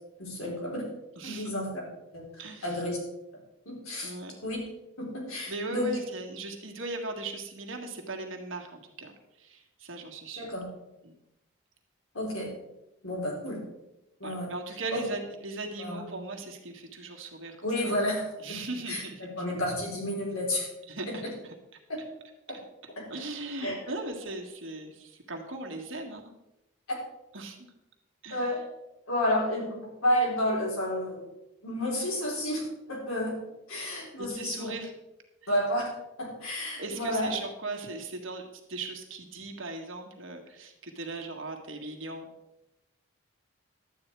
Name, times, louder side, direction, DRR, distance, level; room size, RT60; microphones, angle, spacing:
voice 1, 0.2-0.9 1.2-1.7 2.1-2.2 2.6-3.0 3.7-4.1 4.4-4.6 5.0-5.9 10.4-10.6 12.1-12.5 13.0-13.6 14.2-14.5 14.9-15.0 15.8-16.1 17.6-18.6 18.9-20.7 21.1-21.2 23.0-23.1 23.6-23.9 26.9-27.0 28.3-28.6 29.1-31.2 31.6-32.6 32.9-33.3 33.7-34.7 35.5-35.9 36.2-37.3, left 1 dB, 80° left, -2 dB, 4.2 m, -30 dB
voice 2, 1.2-1.5 2.4-2.8 4.0-4.3 5.5-10.5 11.0-11.1 14.2-17.9 18.4-19.4 20.9-21.5 23.1-26.2 27.3-27.7 28.2-28.5 34.2-34.9 36.8-42.3, right 2 dB, 65° right, 2 dB, 1.8 m, -38 dB
11.5 x 8.8 x 4.6 m, 0.91 s
head